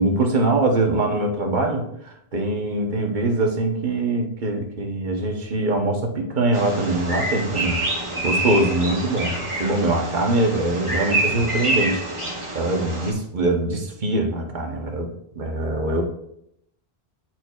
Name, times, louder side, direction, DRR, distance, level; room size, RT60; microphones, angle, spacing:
voice 1, 0.0-7.8 8.2-12.0 12.5-16.0, right 2 dB, 50° right, 2 dB, 1.1 m, -23 dB
Bird vocalization bird call bird song, 6.5-13.1, right 2 dB, 30° right, 1.3 m, -27 dB
9.6 x 4.4 x 2.4 m, 0.75 s
omnidirectional pair, 1.1 m